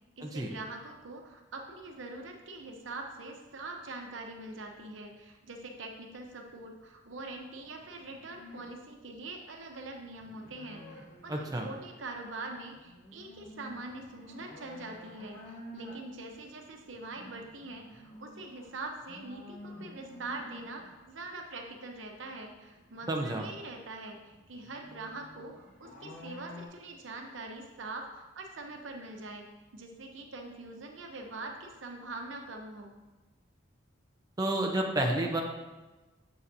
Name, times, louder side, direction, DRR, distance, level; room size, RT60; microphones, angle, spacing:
voice 1, 0.2-29.5 29.7-32.9, right 2 dB, 90° right, 3 dB, 0.8 m, -43 dB
sound 1, 7.4-8.7 9.9-12.0 12.5-21.2 22.4-26.7, left 1 dB, 50° left, 1.4 m, -50 dB
voice 2, 11.3-11.7 23.1-23.4 34.4-35.4, right 1 dB, 20° right, 1 dB, 0.7 m, -30 dB
7.1 x 6.9 x 2.7 m, 1.2 s
head